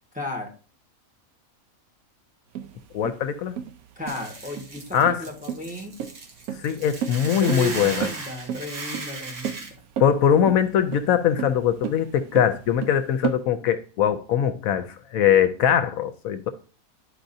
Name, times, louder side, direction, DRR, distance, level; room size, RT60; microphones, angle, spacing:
voice 1, 0.1-0.5 3.9-6.0 7.4-9.7, left 1 dB, 5° right, 1.4 m, -34 dB
sound 1, 2.6-13.4, right 8 dB, 90° right, 1.1 m, -33 dB
voice 2, 2.9-3.5 4.9-5.2 6.6-8.1 10.0-16.5, left 9 dB, 75° left, 1.0 m, -21 dB
Hiss / Boiling, 4.1-9.7, right 3 dB, 60° right, 1.6 m, -37 dB
11.5 x 4.8 x 2.6 m
omnidirectional pair, 1.5 m